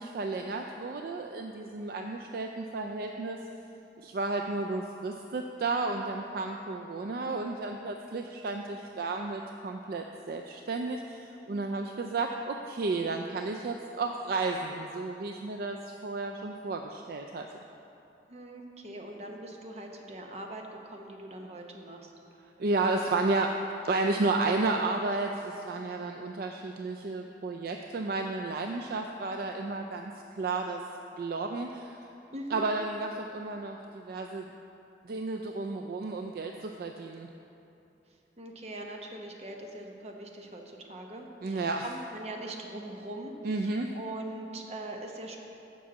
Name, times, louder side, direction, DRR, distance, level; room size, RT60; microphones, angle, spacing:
voice 1, 0.0-3.4 4.0-17.5 22.6-30.8 31.2-32.0 32.5-34.4 35.0-37.3 41.4-41.9 43.4-43.9, right 3 dB, 55° right, 3 dB, 0.4 m, -32 dB
voice 2, 18.3-22.1 32.3-32.6 38.4-43.3 43.6-45.4, right 1 dB, 35° right, 2 dB, 0.8 m, -42 dB
7.5 x 5.5 x 7.2 m, 2.9 s
head